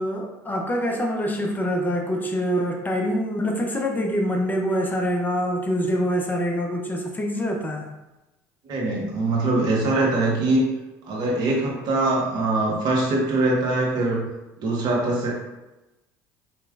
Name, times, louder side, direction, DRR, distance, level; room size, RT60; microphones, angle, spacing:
voice 1, 0.0-7.9, equal, 20° left, 1 dB, 0.6 m, -25 dB
voice 2, 8.6-10.7 11.1-14.2 14.6-15.3, right 2 dB, 55° right, -2 dB, 1.2 m, -22 dB
4.4 x 3.1 x 2.4 m, 1.0 s
hypercardioid pair, 70°, 9 cm